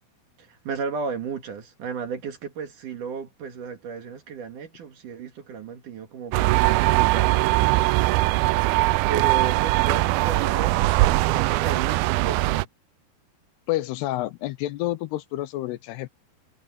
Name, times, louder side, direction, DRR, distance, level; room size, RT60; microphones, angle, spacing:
voice 1, 0.4-8.2 9.1-12.7, right 6 dB, 55° right, 3.1 m, -34 dB
sound 1, 6.3-12.6, right 20 dB, 85° right, 2.1 m, -21 dB
voice 2, 13.7-16.1, left 16 dB, 80° left, 2.8 m, -29 dB
omnidirectional pair, 4.8 m